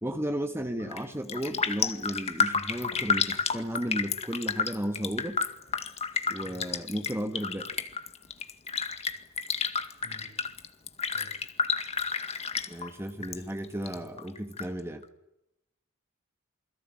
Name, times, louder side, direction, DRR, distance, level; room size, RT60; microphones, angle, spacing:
voice 1, 0.0-5.4 6.3-7.7 12.7-15.0, equal, 10° right, 6 dB, 2.0 m, -34 dB
Raindrop, 0.8-1.0 1.3-13.4 13.6-14.6 15.0-15.1, left 5 dB, 30° left, 2.1 m, -31 dB
voice 2, 6.4-6.8 10.0-10.4 11.1-11.4 13.2-13.4 13.8-14.1, left 1 dB, 50° left, 8 dB, 6.7 m, -51 dB
28.5 x 22.5 x 9.3 m, 0.86 s
head